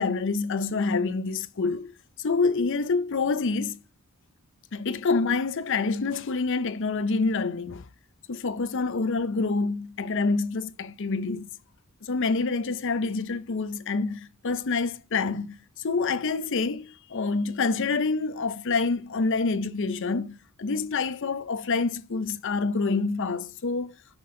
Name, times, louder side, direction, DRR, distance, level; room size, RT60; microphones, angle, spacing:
voice 1, 0.0-3.8 4.7-7.9 8.3-11.5 12.0-23.9, left 4 dB, 55° left, 0.6 m, -27 dB
6.1 x 5.5 x 3.7 m
head